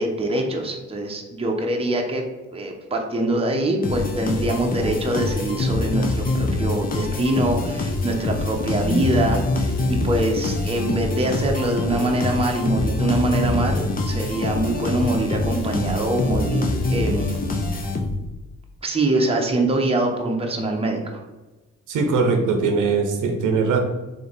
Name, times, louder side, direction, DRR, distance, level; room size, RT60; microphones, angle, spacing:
voice 1, 0.0-2.2 2.5-17.3 18.8-21.2, right 1 dB, 20° right, 1 dB, 0.8 m, -24 dB
sound 1, 3.8-18.4, left 2 dB, 30° left, 0.7 m, -24 dB
voice 2, 21.9-23.8, right 4 dB, 80° right, 4 dB, 0.8 m, -21 dB
3.5 x 3.2 x 4.0 m, 1.1 s
cardioid pair, 90°, 30 cm